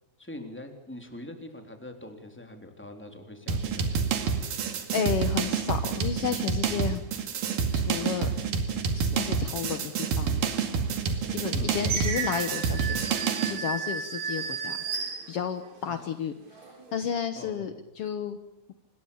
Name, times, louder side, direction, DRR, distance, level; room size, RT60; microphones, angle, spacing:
voice 1, 0.2-4.3 11.5-11.7 15.9-16.0 17.3-17.7, left 1 dB, 5° left, 5 dB, 3.1 m, -43 dB
sound 1, 3.5-13.6, right 6 dB, 65° right, 3.7 m, -28 dB
voice 2, 4.9-7.0 7.7-8.3 8.9-10.4 11.3-13.1 13.5-14.8 15.3-18.4, left 8 dB, 75° left, 9 dB, 1.3 m, -32 dB
sound 2, 11.2-15.9 16.4-17.0, right 5 dB, 50° right, 4.4 m, -34 dB
26.5 x 21.0 x 7.2 m, 0.85 s
omnidirectional pair, 4.3 m